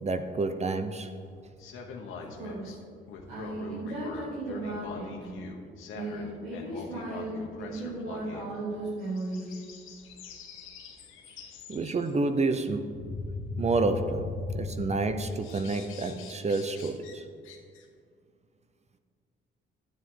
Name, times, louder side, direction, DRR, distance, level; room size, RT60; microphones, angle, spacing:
voice 1, 0.0-1.1 11.7-12.9 13.6-17.2, right 3 dB, 35° right, 9 dB, 0.7 m, -29 dB
sound 1, 1.2-2.8 3.1-8.5 9.2-12.1 12.8-15.0 15.4-17.2 17.4-17.8, left 4 dB, 85° left, 1.2 m, -41 dB
voice 2, 2.1-2.8 3.3-5.4 5.9-9.6, right 2 dB, 85° right, -9 dB, 2.7 m, -36 dB
11.0 x 9.2 x 3.8 m, 2.1 s
cardioid pair, 90°, 20 cm